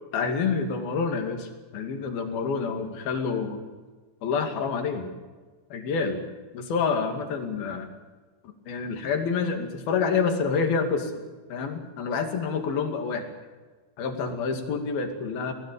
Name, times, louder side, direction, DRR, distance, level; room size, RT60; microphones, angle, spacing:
voice 1, 0.1-3.6 4.2-5.1 5.7-6.2 6.5-7.9 8.7-11.1 11.5-13.2 14.0-15.5, left 5 dB, 60° left, 5 dB, 4.1 m, -28 dB
24.0 x 18.0 x 7.0 m, 1.4 s
omnidirectional pair, 5.3 m